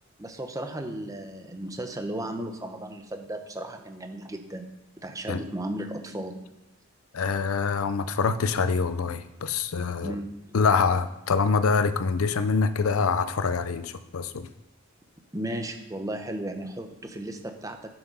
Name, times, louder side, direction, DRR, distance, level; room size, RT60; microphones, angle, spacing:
voice 1, 0.2-4.7 5.0-6.3 10.0-10.5 15.3-17.9, right 1 dB, 15° right, 5 dB, 0.8 m, -35 dB
voice 2, 7.1-10.1 10.5-14.5, left 5 dB, 85° left, 13 dB, 0.5 m, -25 dB
9.5 x 5.9 x 5.5 m, 0.94 s
head